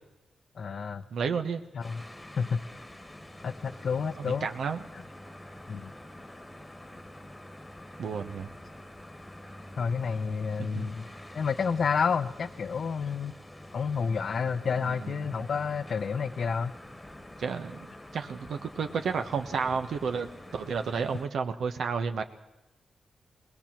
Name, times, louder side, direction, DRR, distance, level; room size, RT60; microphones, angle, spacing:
voice 1, 0.6-1.0 1.7-2.0 2.4-2.6 3.4-4.5 4.9-5.0 5.7-5.9 9.8-11.1 11.3-13.3 13.7-16.7, left 6 dB, 60° left, 7 dB, 0.6 m, -30 dB
voice 2, 1.1-1.6 4.2-4.8 8.0-8.5 10.6-10.9 14.8-15.2 17.4-17.8 18.1-22.2, right 5 dB, 80° right, 7 dB, 1.1 m, -31 dB
sound 1, 1.8-21.3, left 1 dB, 10° left, 1.4 m, -47 dB
20.5 x 19.5 x 7.5 m, 0.97 s
cardioid pair, 100°, 0 cm